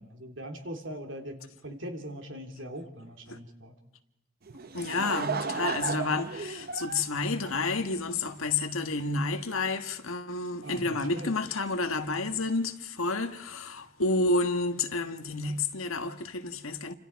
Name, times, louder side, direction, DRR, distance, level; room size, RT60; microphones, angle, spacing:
voice 1, 0.0-3.7 10.6-11.3, equal, 65° right, 3.3 m, -41 dB
Laughter / Crowd, 4.5-8.2, right 5 dB, 45° right, 0.8 m, -34 dB
voice 2, 4.7-16.9, left 3 dB, 90° left, 1.5 m, -30 dB
29.0 x 26.0 x 4.7 m
head